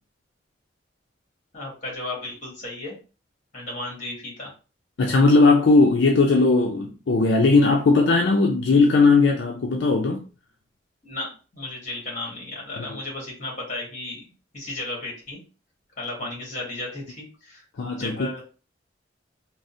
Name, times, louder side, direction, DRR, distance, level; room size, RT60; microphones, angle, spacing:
voice 1, 1.5-3.0 3.5-4.5 11.0-14.2 14.5-15.4 16.0-18.4, left 2 dB, 40° left, 1.7 m, -34 dB
voice 2, 5.0-10.3 12.9-13.0 17.8-18.3, left 3 dB, 70° left, 0.4 m, -18 dB
3.8 x 2.0 x 2.6 m
head